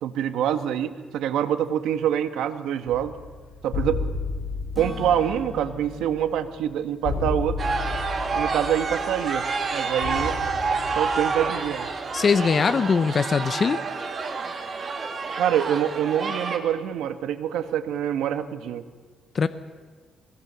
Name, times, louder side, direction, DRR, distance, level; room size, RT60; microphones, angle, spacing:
voice 1, 0.0-3.1 3.6-4.0 4.8-7.6 8.3-9.4 9.7-10.4 10.9-11.9 15.4-18.8, right 10 dB, 85° right, 9 dB, 1.3 m, -25 dB
sound 1, 2.9-12.3, left 3 dB, 65° left, 5.7 m, -33 dB
Acoustic guitar / Strum, 4.7-8.7, left 1 dB, 5° left, 2.2 m, -42 dB
sound 2, 7.6-16.6, right 4 dB, 35° right, 2.2 m, -29 dB
voice 2, 12.1-13.8 19.3-19.5, left 5 dB, 35° left, 11 dB, 0.7 m, -21 dB
22.0 x 20.5 x 6.9 m, 1.5 s
cardioid pair, 145°, 0 cm